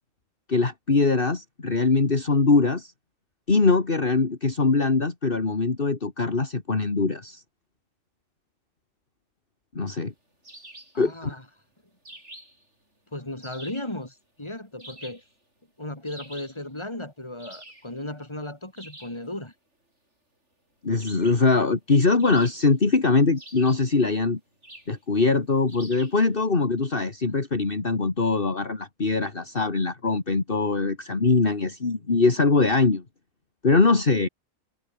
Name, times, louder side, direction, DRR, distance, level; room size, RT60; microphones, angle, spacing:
voice 1, 0.5-2.9 3.5-7.4 9.7-10.1 11.0-11.4 20.8-24.4 24.9-33.0 33.6-34.3, left 3 dB, 45° left, 2.4 m, -22 dB
sound 1, 10.4-11.0 12.1-12.7 13.4-13.9 14.8-15.3 16.1-16.6 17.4-17.9 18.8-19.2 21.0-21.5 22.2-22.9 23.4-23.9 24.6-25.0 25.7-26.2, right 1 dB, 60° right, 8.6 m, -46 dB
voice 2, 10.9-11.4 13.1-15.2 15.8-19.5, left 1 dB, 20° left, 4.0 m, -36 dB
omnidirectional pair, 1.4 m